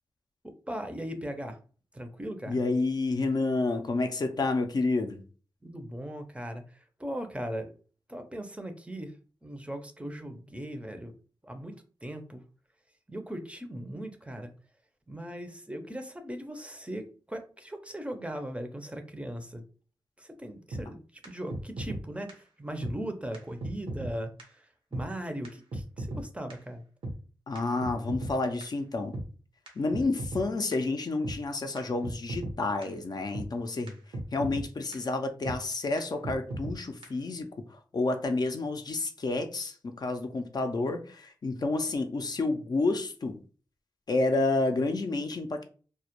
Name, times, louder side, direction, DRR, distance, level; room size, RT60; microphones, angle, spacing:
voice 1, 0.7-1.6 1.9-2.6 5.6-7.7 8.1-9.1 9.4-11.1 11.4-11.7 12.0-12.4 13.1-14.5 15.1-19.6 20.2-26.8, right 1 dB, 15° right, 0.5 m, -38 dB
voice 2, 2.5-5.2 27.5-29.2 29.8-33.9 34.3-43.4 44.1-45.6, left 3 dB, 50° left, 0.4 m, -29 dB
sound 1, 20.7-20.8 21.2-21.3 21.5-22.0 22.3-22.4 22.8-22.9 23.3-23.4 23.6-24.1 24.4-24.5 24.9-25.0 25.4-25.5 25.7-26.2 26.5-26.6 27.0-27.1 27.6-28.3 28.6-28.7 29.1-29.3 29.7-29.8 29.9-30.4 30.7-30.8 31.2-31.4 31.8-31.9 32.0-32.5 32.8-32.9 33.3-33.5 33.9-34.0 34.1-34.6 34.9-35.0 35.5-35.6 36.0-36.1 36.2-36.8 37.0-37.1, right 1 dB, 85° right, 0.7 m, -35 dB
2.1 x 2.0 x 2.9 m
cardioid pair, 50°, 9 cm